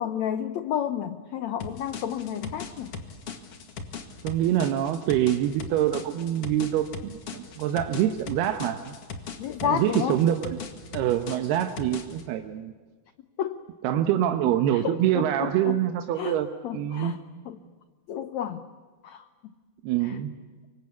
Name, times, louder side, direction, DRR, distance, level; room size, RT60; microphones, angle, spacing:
voice 1, 0.0-2.9 9.4-10.2 13.4-13.6 13.9-14.0 14.7-15.8 16.2-16.4 16.6-17.2 17.4-17.6 18.1-18.6 19.0-19.2 20.0-20.2, left 9 dB, 80° left, 10 dB, 1.6 m, -31 dB
sound 1, 1.6-12.3, left 5 dB, 45° left, 2.5 m, -39 dB
voice 2, 4.2-8.9 9.6-10.6 10.9-12.7 13.8-17.2 19.8-20.3, right 11 dB, 85° right, 7 dB, 3.1 m, -25 dB
25.5 x 24.0 x 8.4 m, 1.5 s
omnidirectional pair, 4.5 m